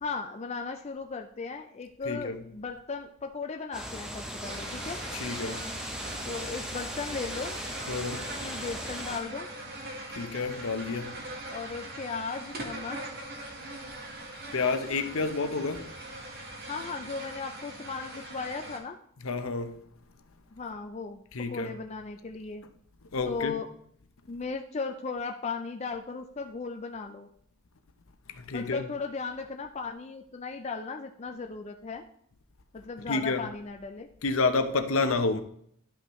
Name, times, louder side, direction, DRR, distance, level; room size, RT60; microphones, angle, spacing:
voice 1, 0.0-5.0 6.3-7.6 8.4-9.5 11.5-13.0 16.7-19.0 20.5-21.2 21.5-22.6 23.2-23.7 24.3-27.3 28.5-32.0 32.7-34.1, left 4 dB, 30° left, 0.4 m, -36 dB
voice 2, 2.1-2.4 5.1-5.7 7.9-8.3 10.1-11.2 14.5-15.9 19.2-19.8 21.3-21.8 23.1-23.6 28.3-28.9 33.1-33.5 34.2-35.4, left 3 dB, 65° left, 0.7 m, -29 dB
sound 1, 3.7-9.2, equal, 5° right, 0.7 m, -38 dB
sound 2, 4.4-18.8, right 1 dB, 45° right, 1.4 m, -41 dB
11.5 x 5.4 x 3.1 m
head